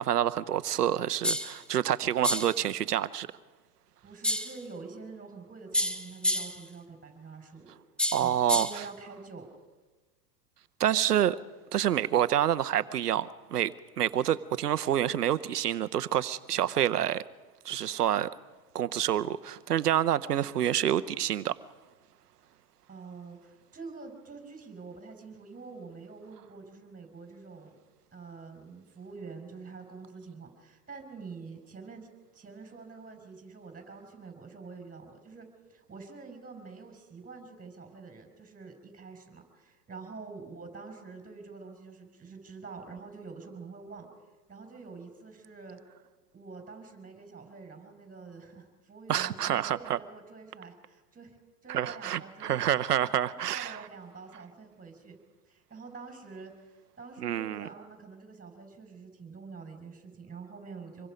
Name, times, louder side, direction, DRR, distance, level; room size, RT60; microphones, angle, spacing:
voice 1, 0.0-3.3 8.1-8.7 10.8-11.4 11.7-17.2 17.6-18.3 18.7-21.5 49.1-50.0 51.7-53.8 57.2-57.7, right 11 dB, 90° right, 14 dB, 0.8 m, -27 dB
sound 1, 1.2-1.6 2.2-2.6 4.2-4.6 5.7-6.6 8.0-8.8, left 1 dB, ahead, 1.1 m, -29 dB
voice 2, 4.0-7.7 8.2-9.5 22.9-27.8 28.1-44.1 44.5-45.8 46.3-52.6 52.9-55.2 55.5-61.1, right 4 dB, 20° right, 5 dB, 5.5 m, -46 dB
26.0 x 22.5 x 5.2 m, 1.3 s
hypercardioid pair, 95°, 45 cm